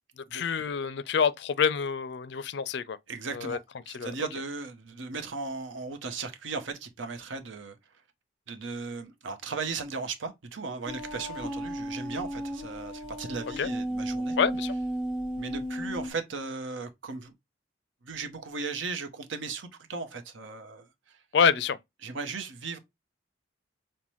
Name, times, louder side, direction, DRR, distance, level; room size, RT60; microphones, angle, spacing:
voice 1, 0.2-3.0 3.3-3.6 3.9-4.1 13.6-13.7 14.4-14.7 21.3-21.8, left 6 dB, 60° left, 0.4 m, -27 dB
voice 2, 3.1-3.6 3.9-7.8 8.5-14.4 15.4-17.3 18.0-20.9 22.0-22.8, right 4 dB, 80° right, 0.7 m, -37 dB
sound 1, 10.9-16.1, equal, 5° right, 1.0 m, -34 dB
5.5 x 2.1 x 3.0 m
head